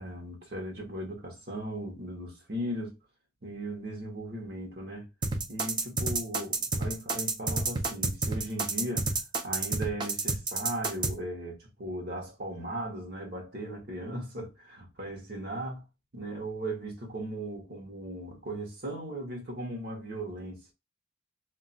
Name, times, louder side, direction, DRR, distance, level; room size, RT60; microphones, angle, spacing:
voice 1, 0.0-3.0 3.4-5.1 5.5-9.1 9.4-15.8 16.1-20.7, right 1 dB, 50° right, 0.8 m, -37 dB
sound 1, 5.2-11.1, right 3 dB, 20° right, 0.4 m, -29 dB
2.3 x 2.2 x 3.8 m
head